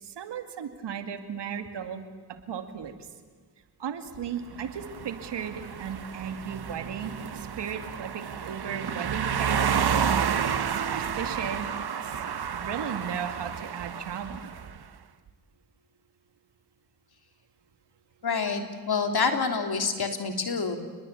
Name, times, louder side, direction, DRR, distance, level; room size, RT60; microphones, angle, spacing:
voice 1, 0.0-2.0 2.3-2.9 3.8-9.7 10.7-11.7 12.0-12.2 12.5-14.5, right 7 dB, 85° right, 7 dB, 2.4 m, -36 dB
sound 1, 4.5-14.8, right 7 dB, 70° right, 1.5 m, -30 dB
voice 2, 18.2-20.8, left 5 dB, 65° left, 5 dB, 3.7 m, -27 dB
29.0 x 21.0 x 8.6 m, 1.6 s
supercardioid pair, 45°, 41 cm